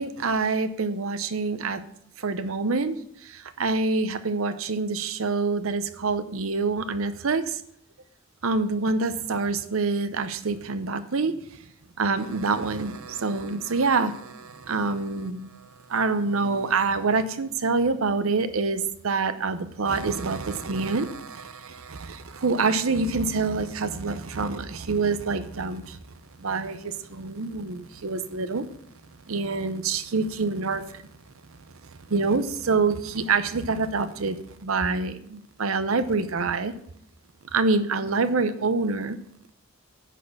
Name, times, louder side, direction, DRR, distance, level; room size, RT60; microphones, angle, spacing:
voice 1, 0.0-1.8 2.2-7.6 8.4-11.6 12.0-26.0 26.4-28.7 29.3-31.0 32.1-36.7 37.5-39.2, right 4 dB, 80° right, 11 dB, 0.7 m, -26 dB
10.0 x 4.2 x 7.0 m, 0.69 s
head